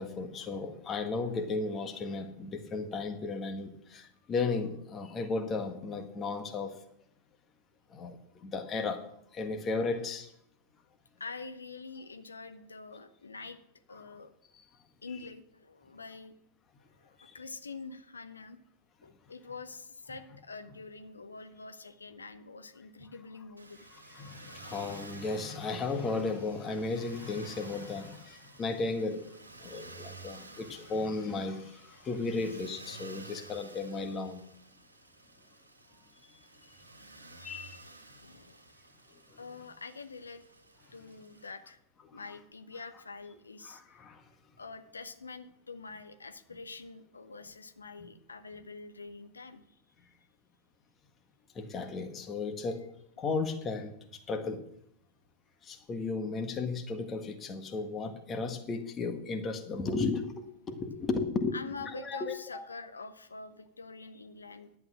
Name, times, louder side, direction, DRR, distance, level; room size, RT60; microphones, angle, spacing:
voice 1, 0.0-6.8 7.9-9.0 9.3-10.3 17.2-17.4 24.1-34.4 37.4-37.8 39.3-39.4 42.1-42.2 43.6-44.2 51.5-52.8 53.2-54.6 55.6-62.6, left 3 dB, 25° left, 6 dB, 1.6 m, -35 dB
voice 2, 11.2-13.6 13.9-14.3 15.0-16.3 17.0-18.6 19.0-23.8 37.4-37.6 38.1-38.7 39.4-40.4 40.9-41.8 42.1-43.8 44.6-49.8 61.5-64.8, left 4 dB, 75° left, 10 dB, 0.8 m, -46 dB
Motor vehicle (road), 23.6-41.5, right 3 dB, 80° right, 1.6 m, -52 dB
11.0 x 8.6 x 6.3 m, 0.75 s
figure-of-eight pair, 90°, 0 cm